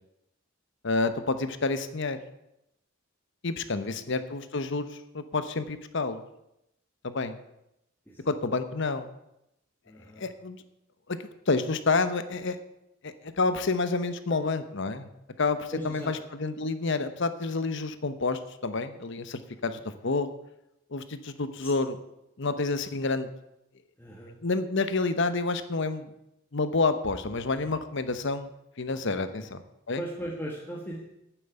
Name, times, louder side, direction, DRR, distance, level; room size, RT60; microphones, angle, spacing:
voice 1, 0.8-2.2 3.4-6.2 7.0-7.4 8.3-9.1 10.2-10.6 11.1-12.6 13.0-15.1 15.4-20.3 20.9-22.0 22.4-23.3 24.4-26.1 26.5-28.5 28.8-29.6 29.9-30.0, left 3 dB, 60° left, 11 dB, 0.9 m, -29 dB
voice 2, 9.9-10.3 14.3-14.4 15.7-16.1 21.6-21.7 24.0-24.3 29.1-29.5 30.0-31.0, equal, 10° left, -4 dB, 1.6 m, -38 dB
9.2 x 7.9 x 9.0 m, 0.84 s
head